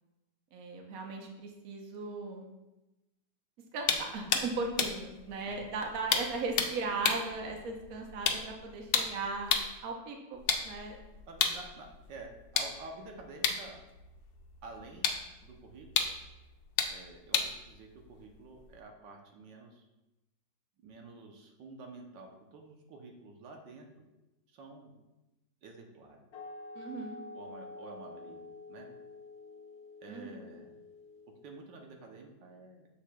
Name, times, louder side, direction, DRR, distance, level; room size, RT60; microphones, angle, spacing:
voice 1, 0.5-2.5 3.7-9.6 9.8-10.4 10.6-11.0 26.7-27.2 30.1-30.5, right 3 dB, 60° right, 2 dB, 1.3 m, -37 dB
sound 1, 3.8-9.8 10.3-18.8, left 6 dB, 80° left, 1.3 m, -34 dB
voice 2, 11.3-13.8 14.6-15.1 15.4-16.0 16.9-19.9 20.8-24.1 24.5-24.9 25.6-26.2 27.3-28.4 28.7-28.9 30.0-30.8 31.4-32.9, right 3 dB, 85° right, 2 dB, 1.5 m, -49 dB
sound 2, 26.3-31.7, left 2 dB, 65° left, 0.6 m, -48 dB
7.3 x 6.9 x 2.3 m, 1.0 s
omnidirectional pair, 1.9 m